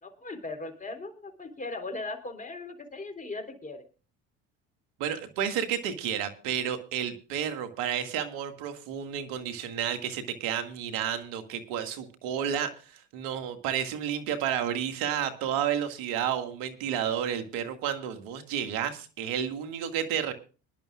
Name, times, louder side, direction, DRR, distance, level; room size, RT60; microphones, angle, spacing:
voice 1, 0.0-3.8, left 3 dB, 20° left, 6 dB, 3.8 m, -38 dB
voice 2, 5.0-20.3, right 9 dB, 75° right, 8 dB, 2.0 m, -31 dB
24.0 x 11.0 x 2.4 m, 0.35 s
hypercardioid pair, 75°, 35 cm